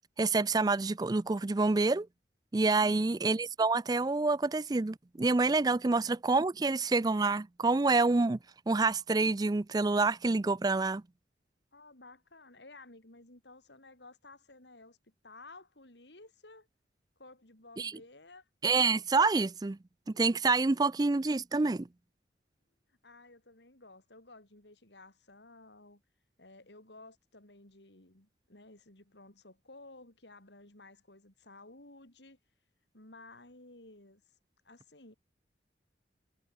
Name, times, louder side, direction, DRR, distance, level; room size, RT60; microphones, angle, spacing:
voice 1, 0.2-2.1 2.5-8.4 8.7-11.0 17.8-17.9 18.6-19.8 20.1-21.9, right 3 dB, 20° right, 0.4 m, -27 dB
voice 2, 11.7-16.7 17.2-18.5 23.0-26.0 26.4-32.4 32.9-34.2 34.6-35.1, left 2 dB, 80° left, 4.7 m, -54 dB
head